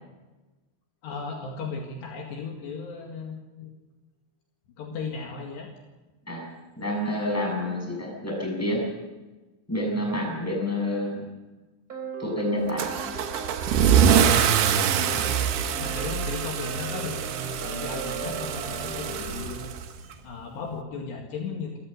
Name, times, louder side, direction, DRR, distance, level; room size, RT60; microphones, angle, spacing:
voice 1, 1.0-3.7 4.8-5.7 9.9-10.1 11.1-11.3 14.0-14.6 15.0-15.4 15.8-21.8, left 4 dB, 65° left, 0 dB, 3.9 m, -36 dB
voice 2, 6.8-8.9 9.7-11.2 12.2-13.0, left 1 dB, 5° left, 0 dB, 6.6 m, -28 dB
sound 1, 11.9-19.5, right 3 dB, 20° right, 3.2 m, -38 dB
Car / Engine starting / Accelerating revving vroom, 12.8-20.1, right 8 dB, 70° right, 2.8 m, -24 dB
28.0 x 14.5 x 6.7 m, 1.2 s
omnidirectional pair, 5.7 m